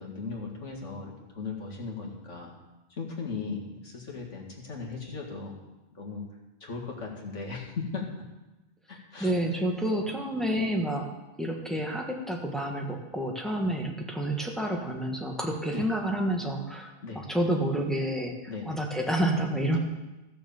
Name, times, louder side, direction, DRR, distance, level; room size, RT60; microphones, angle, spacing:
voice 1, 0.0-2.5 2.9-5.6 5.9-6.2 6.6-8.0 8.9-9.6 15.7-15.8 17.0-17.2 18.5-18.8, left 4 dB, 80° left, 0 dB, 2.4 m, -37 dB
voice 2, 9.2-11.1 11.4-18.3 18.7-19.8, right 1 dB, ahead, 1 dB, 1.5 m, -29 dB
14.0 x 6.7 x 7.1 m, 1.0 s
omnidirectional pair, 1.2 m